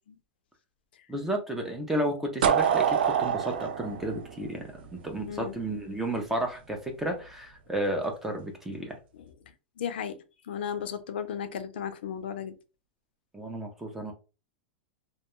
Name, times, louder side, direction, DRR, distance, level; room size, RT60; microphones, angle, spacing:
voice 1, 1.1-4.6 4.9-9.0 13.3-14.1, right 1 dB, 5° right, 0.4 m, -32 dB
sound 1, 2.4-5.3, right 8 dB, 80° right, 0.4 m, -26 dB
voice 2, 5.3-5.6 9.8-10.2 10.5-12.5, left 8 dB, 75° left, 0.5 m, -34 dB
2.3 x 2.2 x 2.9 m
supercardioid pair, 170°, 6 cm